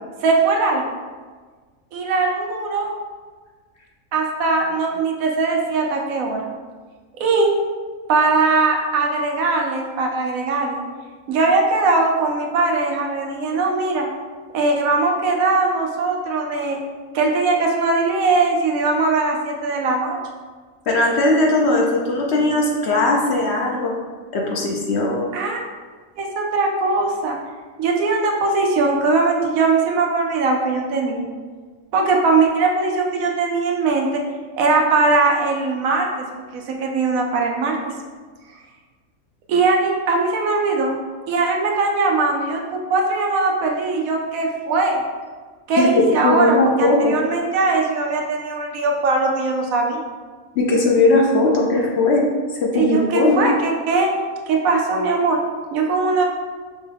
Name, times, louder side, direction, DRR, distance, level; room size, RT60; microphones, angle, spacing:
voice 1, 0.2-0.9 1.9-2.9 4.1-6.5 7.2-7.5 8.1-10.8 11.3-14.1 14.5-16.8 17.1-20.2 25.3-25.6 26.2-27.4 27.8-31.2 31.9-34.2 34.6-36.3 36.5-37.9 39.5-41.0 41.3-45.0 45.7-50.0 52.7-54.1 54.5-55.4 55.7-56.2, right 3 dB, 80° right, 1 dB, 1.1 m, -20 dB
voice 2, 20.9-23.9 24.3-25.3 45.8-47.1 50.6-52.2 52.6-53.6, left 2 dB, 65° left, -1 dB, 0.8 m, -18 dB
5.4 x 2.2 x 3.3 m, 1.5 s
omnidirectional pair, 1.4 m